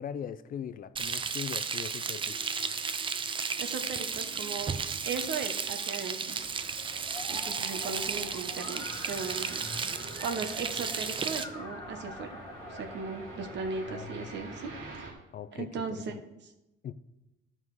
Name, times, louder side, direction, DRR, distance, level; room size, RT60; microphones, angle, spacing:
voice 1, 0.0-2.4 13.9-14.4 15.3-16.2 16.8-16.9, left 8 dB, 45° left, 14 dB, 0.5 m, -40 dB
Frying (food), 1.0-11.4, right 5 dB, 25° right, 0.5 m, -34 dB
sound 1, 2.3-15.0, left 2 dB, 20° left, 1.4 m, -48 dB
voice 2, 3.6-4.8 5.0-6.4 7.3-9.7 10.2-12.3 12.7-15.1 15.5-16.0, right 5 dB, 60° right, 6 dB, 1.1 m, -37 dB
sound 2, 6.3-15.1, right 3 dB, 80° right, 2.7 m, -48 dB
13.0 x 5.6 x 4.8 m, 0.94 s
cardioid pair, 145°, 20 cm